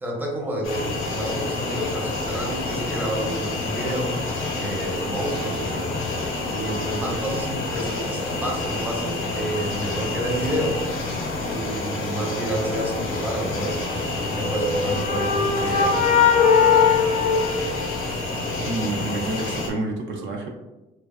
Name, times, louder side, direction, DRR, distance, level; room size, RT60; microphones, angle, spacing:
voice 1, 0.0-4.2 4.5-5.9 6.5-10.8 11.4-13.9 14.2-16.1, right 1 dB, 10° right, -1 dB, 0.5 m, -29 dB
sound 1, 0.6-19.7, left 2 dB, 85° left, 0.6 m, -28 dB
sound 2, 14.5-18.4, left 6 dB, 40° left, 0.4 m, -20 dB
voice 2, 18.6-20.5, right 2 dB, 70° right, 2 dB, 0.4 m, -29 dB
2.4 x 2.2 x 2.3 m, 1.0 s
cardioid pair, 90°, 20 cm